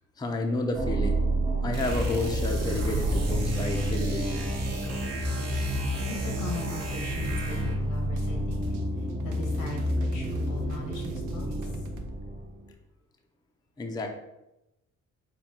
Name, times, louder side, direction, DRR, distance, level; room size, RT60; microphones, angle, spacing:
voice 1, 0.2-1.2 1.6-4.5 13.8-14.1, left 2 dB, 15° left, 3 dB, 0.5 m, -31 dB
sound 1, 0.7-12.6, right 1 dB, 25° right, 0.7 m, -30 dB
sound 2, 1.7-7.9, equal, 55° right, 1.0 m, -32 dB
voice 2, 6.2-8.7 9.0-11.6, left 3 dB, 85° left, 1 dB, 1.1 m, -39 dB
sound 3, 7.0-12.2, right 2 dB, 85° right, 0.6 m, -43 dB
4.0 x 2.2 x 4.3 m, 0.92 s
cardioid pair, 90°, 30 cm